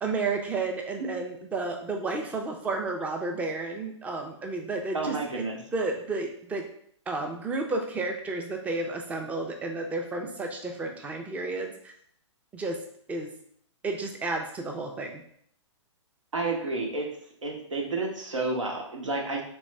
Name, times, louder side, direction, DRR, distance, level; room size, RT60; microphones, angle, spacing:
voice 1, 0.0-5.2 5.7-6.7 7.1-11.9 12.5-12.8 13.1-13.3 13.8-15.2, right 3 dB, 10° right, 3 dB, 0.4 m, -31 dB
voice 2, 4.9-5.6 16.3-17.1 17.4-19.4, right 3 dB, 85° right, 0 dB, 1.1 m, -30 dB
3.5 x 3.1 x 3.1 m, 0.65 s
hypercardioid pair, 125°, 16 cm